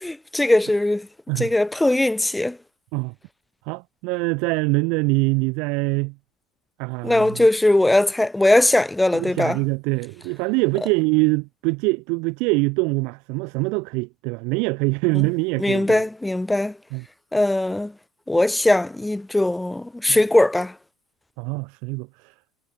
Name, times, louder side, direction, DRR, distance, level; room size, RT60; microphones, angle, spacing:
voice 1, 0.0-1.1 1.4-2.6 7.0-9.6 15.6-16.8 17.3-17.9 18.3-20.7, left 1 dB, 5° left, 0.6 m, -20 dB
voice 2, 3.7-6.1 6.8-7.4 9.1-16.0 16.9-17.0 20.1-20.2 21.4-22.3, right 31 dB, 55° right, 1.2 m, -24 dB
figure-of-eight pair, 75°, 0 cm